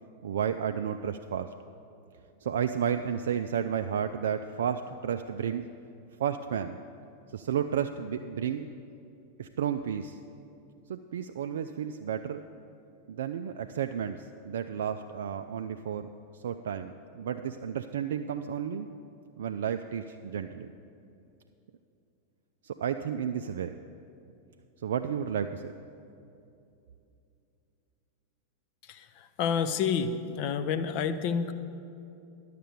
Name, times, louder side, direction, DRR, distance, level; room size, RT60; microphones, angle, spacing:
voice 1, 0.2-1.5 2.4-5.7 6.2-6.8 7.3-8.7 9.4-10.2 10.9-12.4 13.1-16.1 16.3-18.9 19.4-20.7 22.6-23.8 24.8-25.7, right 8 dB, 60° right, 7 dB, 0.3 m, -32 dB
voice 2, 28.8-31.5, left 6 dB, 45° left, 12 dB, 0.6 m, -29 dB
11.0 x 6.6 x 6.7 m, 2.7 s
figure-of-eight pair, 90°, 0 cm